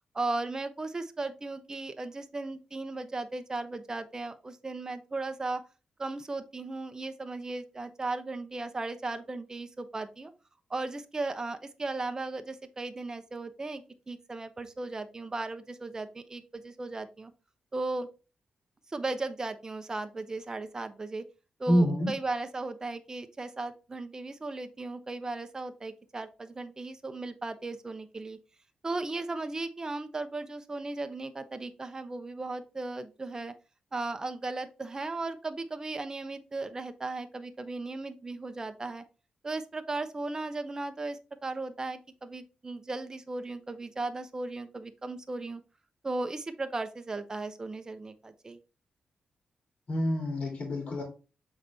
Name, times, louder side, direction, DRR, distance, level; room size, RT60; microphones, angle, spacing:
voice 1, 0.1-5.6 6.0-10.3 10.7-17.3 17.7-18.1 18.9-21.2 21.6-28.4 28.8-33.5 33.9-39.0 39.4-45.6 46.0-48.6, right 2 dB, 25° right, 8 dB, 0.8 m, -36 dB
voice 2, 21.7-22.1 49.9-51.0, equal, 55° left, 0 dB, 2.4 m, -26 dB
7.0 x 3.9 x 3.4 m, 0.32 s
wide cardioid pair, 110°, 3 cm